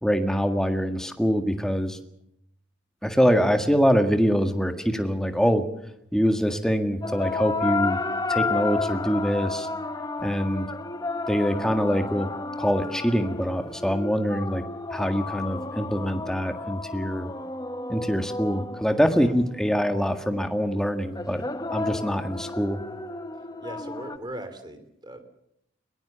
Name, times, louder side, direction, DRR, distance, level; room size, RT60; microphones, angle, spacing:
voice 1, 0.0-2.0 3.0-5.7 6.1-8.0 8.3-9.7 10.2-10.7 11.3-12.3 12.6-14.6 14.9-17.3 17.9-21.4 21.7-22.8, equal, 5° left, 6 dB, 1.7 m, -24 dB
sound 1, 7.0-19.6 21.2-24.2, left 3 dB, 20° left, 1.0 m, -32 dB
voice 2, 23.6-25.2, right 1 dB, 20° right, 10 dB, 3.0 m, -39 dB
21.5 x 20.5 x 7.0 m, 0.76 s
head